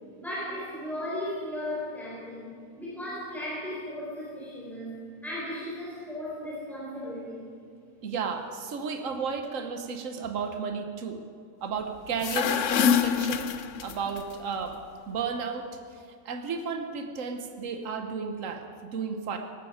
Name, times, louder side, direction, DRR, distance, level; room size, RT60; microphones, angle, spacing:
voice 1, 0.2-7.5, left 1 dB, ahead, -7 dB, 4.3 m, -36 dB
voice 2, 8.0-11.2 11.6-13.5 13.8-14.8 15.1-15.7 16.2-18.6 18.9-19.4, right 5 dB, 65° right, 5 dB, 1.5 m, -33 dB
sound 1, 12.1-14.2, left 7 dB, 65° left, 0.9 m, -25 dB
18.5 x 14.5 x 5.0 m, 2.2 s
omnidirectional pair, 1.5 m